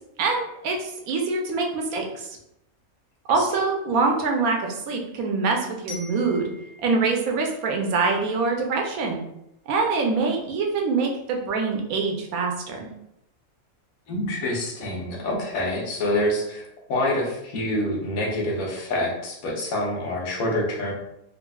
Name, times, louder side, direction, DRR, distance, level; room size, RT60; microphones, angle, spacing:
voice 1, 0.2-2.4 3.3-6.5 6.8-9.2 9.7-12.9, right 4 dB, 80° right, 1 dB, 1.1 m, -24 dB
Glockenspiel, 5.9-8.7, left 3 dB, 55° right, 0.7 m, -46 dB
voice 2, 14.1-20.9, left 1 dB, 75° left, -2 dB, 1.2 m, -27 dB
3.8 x 2.4 x 2.2 m, 0.81 s
omnidirectional pair, 1.5 m